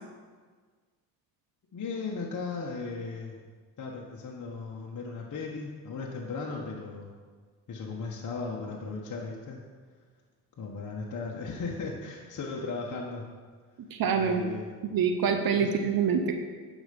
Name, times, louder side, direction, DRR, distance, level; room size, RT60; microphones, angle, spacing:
voice 1, 1.7-3.4 3.8-7.1 7.7-9.6 10.6-13.3 14.1-14.8 15.6-15.8, left 4 dB, 40° left, -2 dB, 1.4 m, -36 dB
voice 2, 13.9-14.4 14.8-16.4, right 6 dB, 50° right, 6 dB, 1.0 m, -26 dB
10.5 x 5.2 x 5.3 m, 1.5 s
hypercardioid pair, 65°, 45 cm